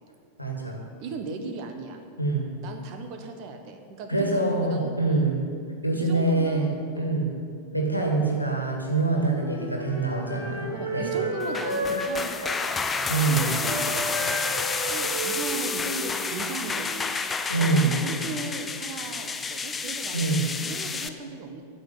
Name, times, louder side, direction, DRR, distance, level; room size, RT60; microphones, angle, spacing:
voice 1, 0.4-0.9 2.2-2.5 4.1-5.4 5.8-7.3 7.7-11.2 13.1-13.5 17.5-18.0 20.1-20.4, right 3 dB, 85° left, 0 dB, 1.9 m, -25 dB
voice 2, 1.0-2.0 2.6-5.3 5.9-7.1 9.1-9.4 10.7-12.8 13.2-14.4 14.9-17.1 17.6-20.2 20.6-21.6, right 4 dB, 45° right, 5 dB, 1.3 m, -37 dB
Wind instrument woodwind instrument, 9.3-17.0, right 1 dB, 85° right, 3.5 m, -33 dB
sound 1, 11.4-21.1, left 4 dB, 15° left, 0.6 m, -30 dB
9.4 x 6.7 x 8.5 m, 2.3 s
figure-of-eight pair, 90°, 0 cm